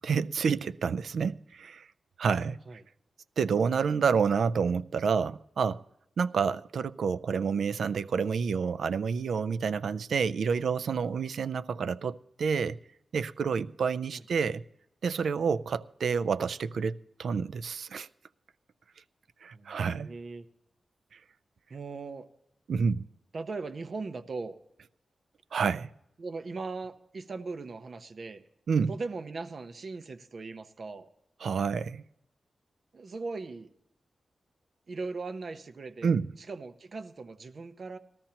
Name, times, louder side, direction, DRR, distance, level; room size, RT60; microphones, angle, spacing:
voice 1, 0.0-1.9 2.2-2.6 3.4-5.8 6.2-12.8 13.1-14.6 15.0-18.1 19.4-20.1 22.7-23.1 25.5-25.9 28.7-28.9 31.4-32.0 36.0-36.3, right 6 dB, 75° right, 0.4 m, -29 dB
voice 2, 19.5-20.5 21.7-22.3 23.3-24.6 26.2-28.4 28.9-31.1 32.9-33.7 34.9-36.2 36.5-38.0, right 3 dB, 50° right, 0.8 m, -39 dB
19.0 x 13.5 x 2.9 m
wide cardioid pair, 125°, 0 cm